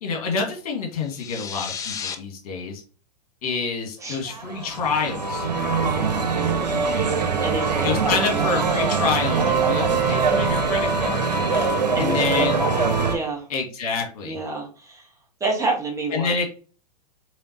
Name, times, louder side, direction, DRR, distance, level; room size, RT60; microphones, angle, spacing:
voice 1, 0.0-2.8 3.4-5.5 7.8-11.3 12.0-12.6 13.5-14.4 16.1-16.4, left 5 dB, 60° left, 1 dB, 1.7 m, -27 dB
sound 1, 1.0-2.2, left 7 dB, 15° left, 0.4 m, -33 dB
sound 2, 4.3-13.2, right 4 dB, 80° right, 0.9 m, -23 dB
voice 2, 5.9-6.7 7.4-8.5 11.4-13.5 14.2-15.1 15.4-16.3, right 3 dB, 15° right, 0 dB, 1.2 m, -30 dB
4.3 x 3.3 x 2.8 m, 0.38 s
hypercardioid pair, 110°, 21 cm